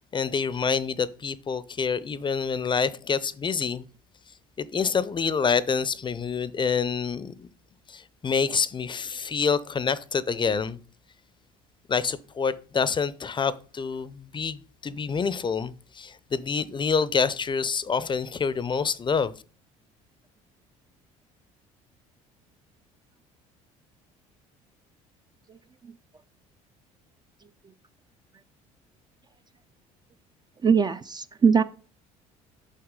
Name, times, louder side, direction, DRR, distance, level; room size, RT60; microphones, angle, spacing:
voice 1, 0.1-3.9 4.6-7.5 7.9-10.8 11.9-19.3, left 5 dB, 25° left, 0.5 m, -27 dB
voice 2, 30.6-31.6, right 6 dB, 25° right, 0.3 m, -21 dB
6.3 x 5.7 x 3.7 m
hypercardioid pair, 65°, 18 cm